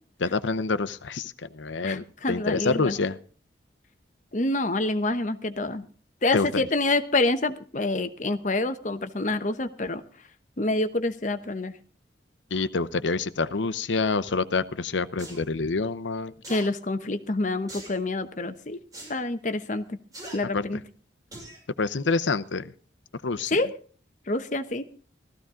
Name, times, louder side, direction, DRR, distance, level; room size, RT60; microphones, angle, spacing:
voice 1, 0.2-3.2 6.3-6.7 12.5-16.3 20.5-20.8 21.8-22.7 23.2-23.6, left 4 dB, 85° left, 14 dB, 0.8 m, -27 dB
voice 2, 1.8-2.9 4.3-5.8 6.2-10.0 10.6-11.7 16.5-18.8 19.1-19.8 20.3-20.8 23.5-23.7 24.3-24.8, left 2 dB, 40° left, 10 dB, 1.0 m, -27 dB
sound 1, 15.2-15.4 16.4-16.7 17.7-18.0 18.9-19.1 20.1-20.4 21.3-21.6 22.1-22.2, right 1 dB, 20° right, 6.3 m, -41 dB
16.0 x 14.0 x 3.8 m, 0.41 s
head